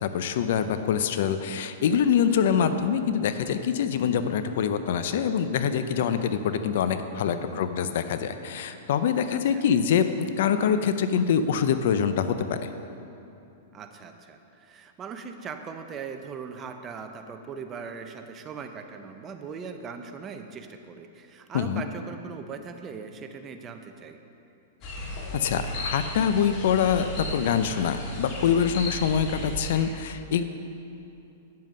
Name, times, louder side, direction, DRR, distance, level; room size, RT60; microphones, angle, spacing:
voice 1, 0.0-12.6 21.5-21.8 25.3-30.4, left 7 dB, 65° left, 10 dB, 0.5 m, -25 dB
voice 2, 7.3-7.6 9.3-9.6 13.7-24.2, right 5 dB, 25° right, 6 dB, 0.6 m, -40 dB
sound 1, 24.8-29.8, equal, 40° left, 2.0 m, -34 dB
9.2 x 7.5 x 5.5 m, 2.7 s
hypercardioid pair, 135°, 0 cm